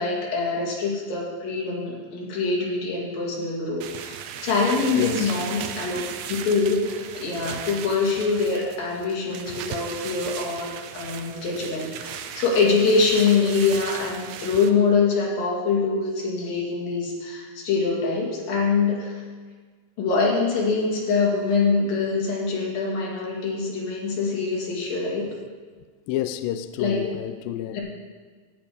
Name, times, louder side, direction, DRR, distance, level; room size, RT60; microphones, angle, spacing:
voice 1, 0.0-6.0 6.3-19.2 20.0-25.3 26.8-27.0 27.7-27.8, left 4 dB, 65° left, 4.0 m, -24 dB
sound 1, 3.8-14.7, right 9 dB, 80° right, 2.3 m, -36 dB
voice 2, 4.9-5.4 26.1-27.8, left 11 dB, 85° left, 2.0 m, -29 dB
13.5 x 8.6 x 5.1 m
omnidirectional pair, 4.4 m